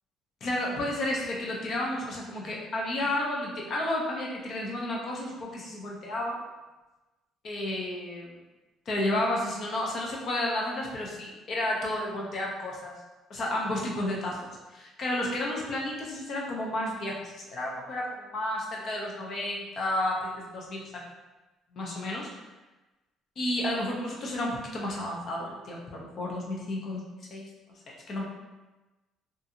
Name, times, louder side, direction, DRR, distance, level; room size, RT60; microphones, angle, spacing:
voice 1, 0.4-6.4 7.4-8.3 8.9-13.0 13.3-21.0 21.7-22.3 23.4-27.0 27.3-27.5 28.1-28.2, left 1 dB, 35° left, -2 dB, 0.4 m, -32 dB
2.6 x 2.4 x 2.6 m, 1.1 s
cardioid pair, 175°, 0 cm